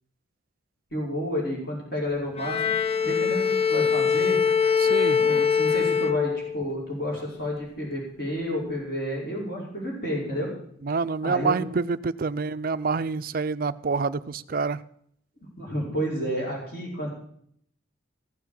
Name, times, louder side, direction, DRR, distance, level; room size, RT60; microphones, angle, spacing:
voice 1, 0.9-2.6 3.0-4.4 5.1-10.5 11.2-11.6 15.6-17.1, equal, 50° left, -3 dB, 5.1 m, -30 dB
Bowed string instrument, 2.4-6.8, left 6 dB, 30° left, 0.6 m, -23 dB
voice 2, 4.8-5.2 10.8-14.8, right 4 dB, 45° right, 14 dB, 0.4 m, -27 dB
15.0 x 7.1 x 7.5 m, 0.67 s
head